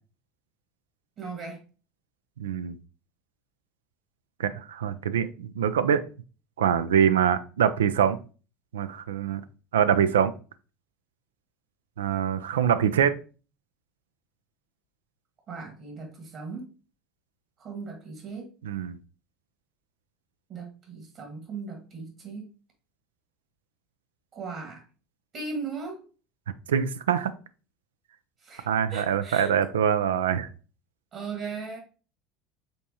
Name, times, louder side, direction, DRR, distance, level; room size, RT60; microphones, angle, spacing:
voice 1, 1.2-1.6 15.5-16.7 17.6-18.5 20.5-22.5 24.3-24.8 25.3-26.0 28.4-29.5 31.1-31.8, right 4 dB, 50° right, 1 dB, 1.5 m, -38 dB
voice 2, 2.4-2.7 4.4-6.0 6.6-8.2 8.7-9.4 9.7-10.3 12.0-13.1 18.6-19.0 26.7-27.3 28.7-30.5, right 8 dB, 80° right, 12 dB, 0.3 m, -24 dB
5.3 x 3.5 x 2.8 m, 0.36 s
hypercardioid pair, 75°, 0 cm